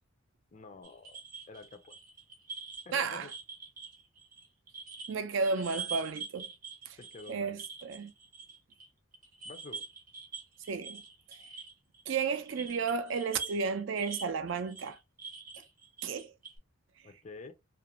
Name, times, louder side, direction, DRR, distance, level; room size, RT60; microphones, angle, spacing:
voice 1, 0.5-1.2 1.5-1.9 2.9-3.3 7.0-7.6 9.5-9.9 17.0-17.5, left 3 dB, 35° left, 0.4 m, -48 dB
sound 1, 0.8-5.1 5.4-8.9 9.1-16.6, right 5 dB, 40° right, 0.8 m, -45 dB
voice 2, 2.9-3.3 5.1-6.5 6.9-7.0 7.3-8.1 10.7-11.0 12.1-15.0 16.0-16.3, right 5 dB, 65° right, 0.4 m, -33 dB
2.5 x 2.1 x 2.9 m
head